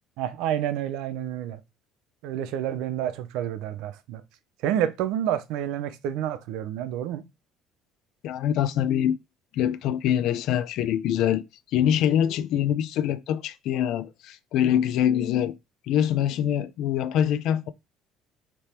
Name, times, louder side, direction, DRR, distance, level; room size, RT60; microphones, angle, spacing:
voice 1, 0.2-1.6 2.2-4.2 4.6-7.2, right 10 dB, 75° right, 0.6 m, -29 dB
voice 2, 8.2-9.2 9.5-11.4 11.7-15.5 15.9-17.7, left 10 dB, 60° left, 0.3 m, -24 dB
3.4 x 2.9 x 4.3 m
cardioid pair, 160°, 0 cm